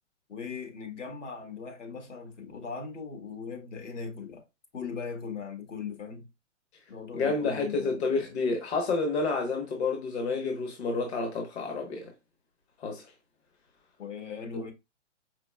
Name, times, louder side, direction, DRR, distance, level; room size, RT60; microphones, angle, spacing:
voice 1, 0.3-4.4 4.7-6.3 6.9-8.2 14.0-14.7, left 5 dB, 75° left, 1.5 m, -39 dB
voice 2, 7.1-12.1 12.8-13.1 14.5-14.6, left 3 dB, 60° left, 1.2 m, -29 dB
4.9 x 4.0 x 2.3 m
hypercardioid pair, 135°, 36 cm